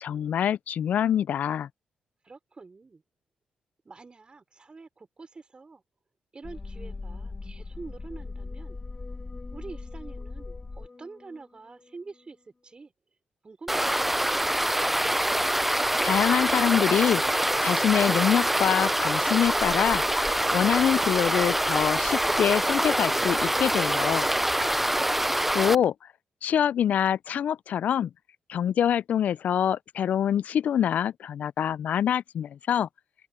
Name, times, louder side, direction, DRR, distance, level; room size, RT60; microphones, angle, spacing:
voice 1, 0.0-1.7 16.0-17.2 17.6-20.0 20.5-24.3 25.5-25.9 26.4-28.1 28.5-32.9, left 9 dB, 70° left, 0.4 m, -25 dB
voice 2, 2.2-3.0 3.8-5.8 6.3-8.8 9.5-12.9 13.4-14.2 25.0-25.5, right 4 dB, 35° right, 4.1 m, -46 dB
sound 1, 6.4-11.4 11.8-11.9, left 3 dB, 35° left, 2.6 m, -39 dB
sound 2, 13.7-25.8, right 1 dB, 5° right, 0.4 m, -25 dB
open air
supercardioid pair, 55°, 3 cm